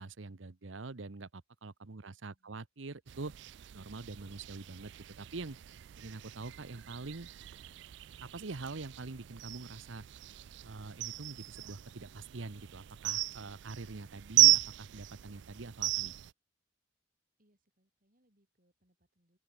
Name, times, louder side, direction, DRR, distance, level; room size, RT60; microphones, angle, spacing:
voice 1, 0.0-3.3 3.7-4.9 5.2-5.6 6.0-7.3 8.2-10.0 10.6-16.1, right 3 dB, 80° right, 1.0 m, -44 dB
voice 2, 2.0-2.6 17.4-19.4, equal, 45° right, 7.1 m, -75 dB
sound 1, 3.1-16.3, right 17 dB, 65° right, 0.4 m, -34 dB
open air
head